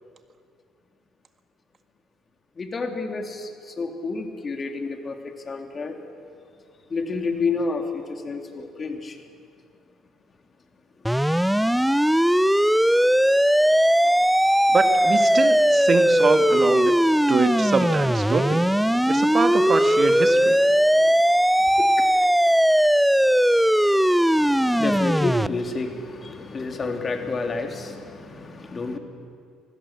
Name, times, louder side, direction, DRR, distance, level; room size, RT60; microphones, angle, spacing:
voice 1, 2.6-6.3 6.9-9.2 13.7-13.9 21.0-21.3 21.8-21.9 24.3-29.0, left 3 dB, 40° left, 5 dB, 2.9 m, -30 dB
sound 1, 11.1-25.5, equal, ahead, 0.6 m, -19 dB
voice 2, 14.7-16.9 17.3-18.7 19.1-20.6, right 5 dB, 45° right, 8 dB, 1.9 m, -24 dB
25.0 x 16.0 x 7.3 m, 2.3 s
hypercardioid pair, 60°, 0 cm